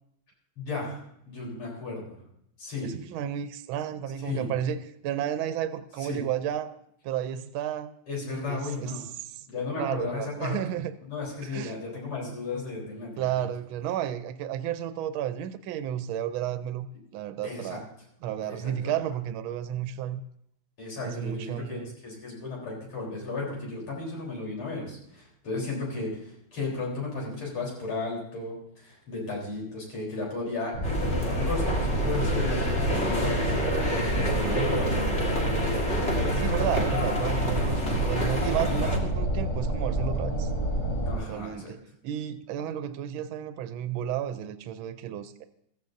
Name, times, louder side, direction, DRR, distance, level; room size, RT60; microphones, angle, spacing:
voice 1, 0.6-1.0 1.3-2.0 2.6-2.9 4.2-4.5 6.0-6.2 8.1-9.0 9.5-10.8 11.1-13.5 17.4-17.8 18.4-18.9 20.8-35.3 36.1-36.5 41.0-41.7, left 3 dB, 80° left, -2 dB, 4.8 m, -35 dB
voice 2, 2.8-6.7 7.0-7.9 8.5-9.4 9.8-10.9 11.4-11.7 13.2-16.9 17.1-17.9 18.2-20.2 21.0-22.0 32.8-33.2 34.3-34.7 36.1-40.5 41.3-41.8 42.0-45.4, right 10 dB, 75° right, 11 dB, 1.4 m, -32 dB
sound 1, 30.7-41.2, right 1 dB, 50° left, 5.0 m, -28 dB
sound 2, 30.8-39.0, equal, 35° left, 1.9 m, -29 dB
15.0 x 14.5 x 2.6 m, 0.73 s
omnidirectional pair, 2.3 m